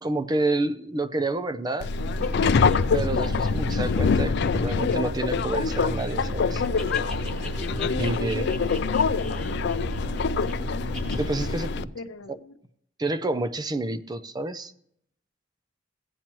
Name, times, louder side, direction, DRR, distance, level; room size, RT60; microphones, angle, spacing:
voice 1, 0.0-1.9 2.9-6.6 8.0-8.5 11.2-11.9 12.3-12.4 13.0-14.7, right 2 dB, 20° right, 12 dB, 0.5 m, -29 dB
Subway metro underground, 1.8-11.8, left 5 dB, 60° left, 0.4 m, -25 dB
sound 1, 2.0-11.5, right 2 dB, 55° right, 0.8 m, -36 dB
sound 2, 2.2-6.2 6.5-10.5 10.9-11.3, left 2 dB, 5° left, 2.0 m, -42 dB
voice 2, 7.9-9.7 11.9-12.5, left 3 dB, 85° left, 9 dB, 0.8 m, -37 dB
15.5 x 8.7 x 3.0 m, 0.71 s
head